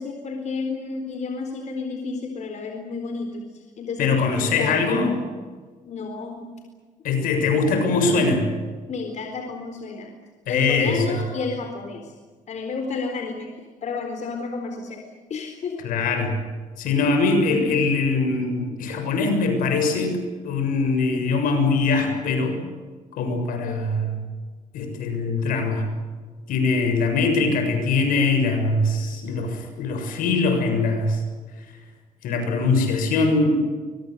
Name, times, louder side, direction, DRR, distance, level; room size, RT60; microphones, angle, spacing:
voice 1, 0.0-5.2 5.8-6.5 8.9-10.1 10.5-12.1 12.5-13.5 13.8-15.0 15.3-15.8 17.5-17.9, left 4 dB, 55° left, 4 dB, 4.2 m, -31 dB
voice 2, 4.0-5.1 7.0-8.5 10.5-11.2 15.8-16.4 16.8-22.6 23.1-24.2 24.7-25.9 26.5-31.2 31.7-31.8 32.2-33.7, left 3 dB, 80° left, 6 dB, 7.0 m, -22 dB
24.0 x 23.0 x 8.2 m, 1.5 s
cardioid pair, 85°, 14 cm